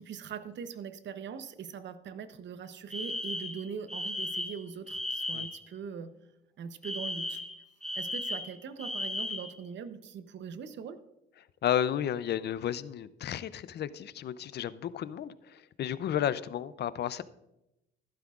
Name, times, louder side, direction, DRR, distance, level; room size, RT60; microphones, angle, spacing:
voice 1, 0.0-6.1 6.6-7.4 7.9-11.0, right 7 dB, 65° right, 11 dB, 0.8 m, -41 dB
Alarm, 2.9-5.6 6.8-9.6, left 1 dB, 5° left, 0.9 m, -36 dB
voice 2, 11.6-17.2, left 10 dB, 55° left, 16 dB, 0.5 m, -32 dB
13.5 x 12.0 x 2.4 m, 0.90 s
cardioid pair, 90°, 20 cm